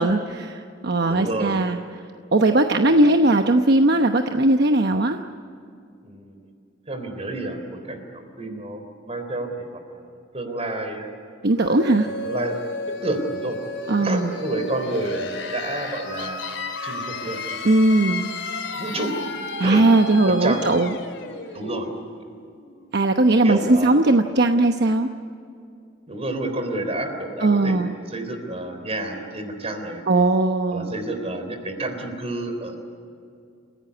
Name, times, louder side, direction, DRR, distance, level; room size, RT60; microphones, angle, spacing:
voice 1, 0.0-1.8 2.3-5.2 8.5-8.6 11.4-12.1 13.9-14.3 17.6-18.3 19.6-20.9 22.9-25.1 27.4-27.9 30.1-30.9, right 2 dB, 60° right, 5 dB, 1.0 m, -19 dB
voice 2, 1.1-1.6 2.8-3.2 6.0-6.3 6.9-10.0 10.3-11.2 12.0-12.6 13.0-13.6 14.0-16.4 16.8-17.6 18.7-19.1 19.6-19.9 20.3-20.7 21.5-21.9 23.4-24.0 26.1-30.0 30.7-32.8, right 2 dB, 35° right, 7 dB, 3.7 m, -30 dB
sound 1, 11.6-23.1, left 3 dB, 85° left, 3.2 m, -33 dB
28.5 x 16.5 x 9.6 m, 2.4 s
head